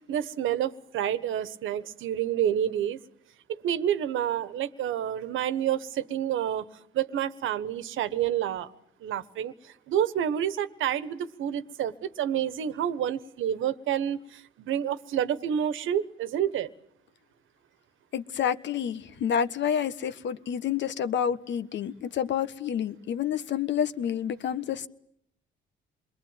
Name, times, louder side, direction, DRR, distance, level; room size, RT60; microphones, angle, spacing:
voice 1, 0.0-3.0 3.6-6.6 6.9-8.7 9.0-9.5 9.9-16.7, right 10 dB, 80° right, 13 dB, 1.4 m, -29 dB
voice 2, 18.1-24.9, left 8 dB, 65° left, 12 dB, 1.4 m, -29 dB
27.5 x 22.0 x 9.1 m, 0.71 s
cardioid pair, 90°, 20 cm